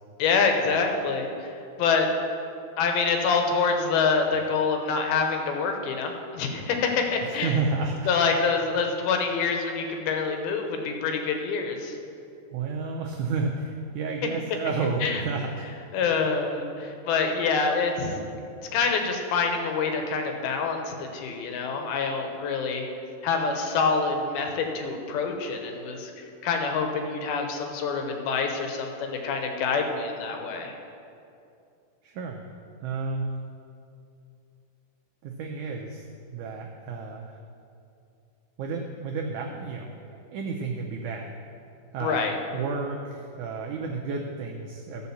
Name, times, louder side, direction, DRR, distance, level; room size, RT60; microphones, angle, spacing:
voice 1, 0.2-1.5 1.8-2.1 2.8-7.5 8.1-12.0 15.0-15.2 15.9-18.2 18.7-22.9 23.2-26.1 26.4-30.7 42.0-42.3, left 5 dB, 80° left, 4 dB, 2.9 m, -26 dB
voice 2, 7.2-8.1 12.5-15.7 32.0-32.4 32.8-33.3 35.2-37.4 38.6-41.3 41.9-42.3 42.5-45.1, right 4 dB, 90° right, 1 dB, 1.7 m, -31 dB
14.0 x 5.1 x 7.1 m, 2.6 s
omnidirectional pair, 4.4 m